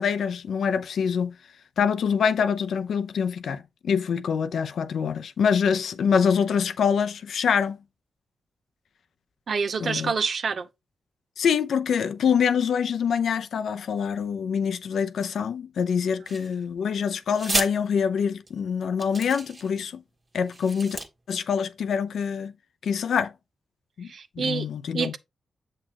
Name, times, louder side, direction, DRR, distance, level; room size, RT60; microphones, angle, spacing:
voice 1, 0.0-1.3 1.8-7.8 9.8-10.1 11.4-20.0 20.3-21.0 21.3-22.5 22.8-23.3 24.0-24.1 24.4-25.1, left 7 dB, 80° left, 0.6 m, -25 dB
voice 2, 9.5-10.7 24.0-24.7 24.9-25.2, right 5 dB, 60° right, 0.7 m, -27 dB
sound 1, 16.3-16.8 17.3-17.7 18.5-18.6 19.0-19.8 20.4-21.1, right 2 dB, 35° right, 1.6 m, -31 dB
7.5 x 6.3 x 2.9 m
cardioid pair, 95°, 0 cm